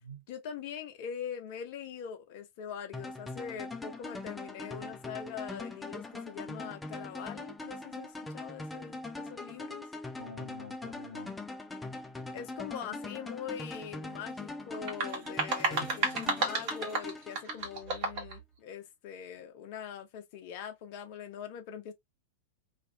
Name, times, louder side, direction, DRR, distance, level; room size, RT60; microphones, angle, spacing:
voice 1, 0.3-9.9 12.3-21.9, left 8 dB, 50° left, 0.8 m, -42 dB
sound 1, 2.9-18.0, left 2 dB, 10° left, 0.4 m, -42 dB
voice 2, 10.2-11.4 15.7-16.3, left 1 dB, 85° left, 1.0 m, -47 dB
sound 2, 14.7-18.4, right 3 dB, 45° right, 1.2 m, -32 dB
2.6 x 2.5 x 2.8 m
figure-of-eight pair, 90°, 0 cm